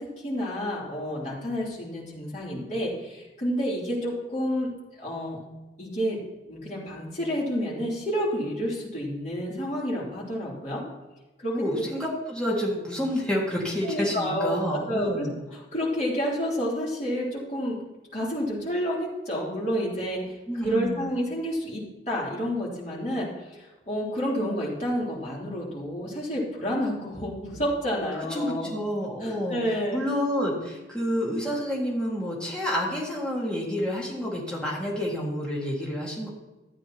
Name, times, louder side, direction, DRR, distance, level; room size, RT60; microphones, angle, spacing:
voice 1, 0.0-4.7 5.0-5.4 5.8-6.2 6.5-10.8 11.4-11.8 13.8-15.3 15.5-17.8 18.1-20.3 20.6-28.7 29.2-30.0, equal, 40° left, -5 dB, 3.3 m, -29 dB
voice 2, 11.5-15.3 20.5-21.1 28.2-29.6 29.9-36.3, equal, 5° left, -5 dB, 1.9 m, -29 dB
13.5 x 8.9 x 3.0 m, 1.1 s
head